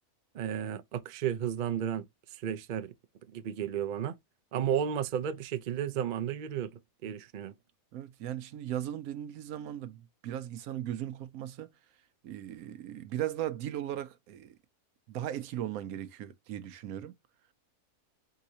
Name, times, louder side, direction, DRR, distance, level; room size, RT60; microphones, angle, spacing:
voice 1, 0.3-2.0 2.3-2.9 3.3-4.2 4.5-6.7 7.0-7.5, right 9 dB, 60° right, 0.5 m, -33 dB
voice 2, 7.9-11.7 12.2-14.5 15.1-17.1, right 11 dB, 90° right, 1.1 m, -37 dB
4.7 x 3.8 x 2.8 m
omnidirectional pair, 1.5 m